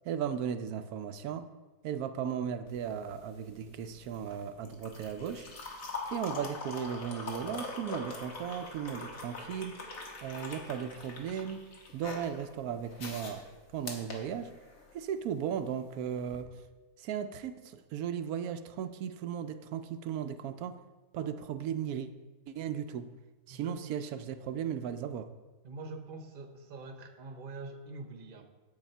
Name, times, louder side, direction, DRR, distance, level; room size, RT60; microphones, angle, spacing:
voice 1, 0.0-1.5 1.8-5.5 6.1-9.8 10.2-11.6 11.9-14.5 14.9-16.5 17.0-20.8 21.1-22.1 22.5-23.1 23.5-25.3, right 8 dB, 85° right, 9 dB, 1.1 m, -36 dB
sound 1, 2.7-15.0 16.2-16.4, left 3 dB, 65° left, 1.8 m, -43 dB
voice 2, 23.5-23.8 25.6-28.4, right 3 dB, 40° right, 5 dB, 1.0 m, -44 dB
9.7 x 7.8 x 4.4 m, 1.2 s
omnidirectional pair, 1.5 m